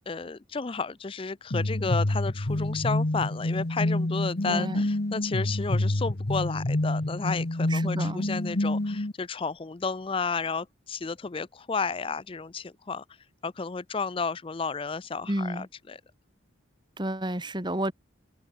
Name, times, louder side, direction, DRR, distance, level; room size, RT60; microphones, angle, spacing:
voice 1, 0.1-13.0 13.4-16.0, left 4 dB, 25° left, 0.4 m, -32 dB
sound 1, 1.5-9.1, left 1 dB, 50° left, 1.2 m, -27 dB
voice 2, 4.5-4.8 7.7-8.3 15.3-15.7 17.0-17.9, right 1 dB, 20° right, 2.4 m, -31 dB
head